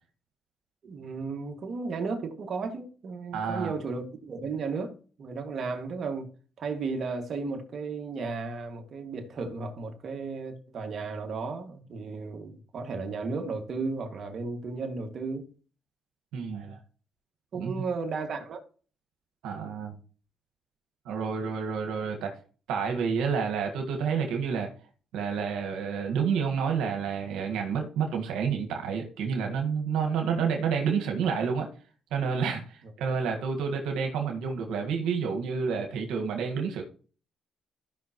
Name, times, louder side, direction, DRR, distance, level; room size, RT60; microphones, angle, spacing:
voice 1, 0.8-4.9 5.2-6.3 6.6-15.5 17.5-18.6, right 4 dB, 55° right, 2.1 m, -34 dB
voice 2, 3.3-3.7 16.3-16.8 17.5-17.7 19.4-20.0 21.0-22.3 22.7-24.7 25.1-31.7 32.1-36.8, right 6 dB, 90° right, 1.6 m, -29 dB
15.0 x 5.7 x 3.1 m
cardioid pair, 90°, 0 cm